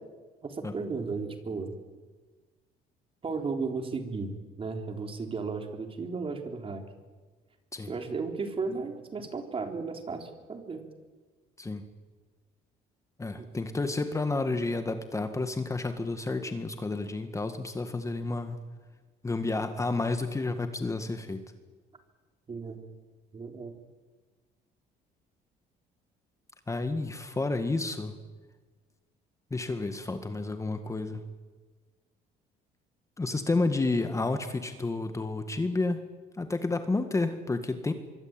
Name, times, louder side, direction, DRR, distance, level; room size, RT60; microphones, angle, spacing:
voice 1, 0.4-1.7 3.2-4.3 4.6-6.8 7.9-10.8 13.4-13.5 22.5-22.8 23.3-23.8, right 4 dB, 30° right, 5 dB, 3.9 m, -34 dB
voice 2, 13.2-18.6 19.2-21.4 26.7-28.2 29.5-31.2 33.2-36.1 36.4-37.9, left 3 dB, 20° left, 8 dB, 1.8 m, -30 dB
25.0 x 23.5 x 9.0 m, 1.4 s
cardioid pair, 110°, 17 cm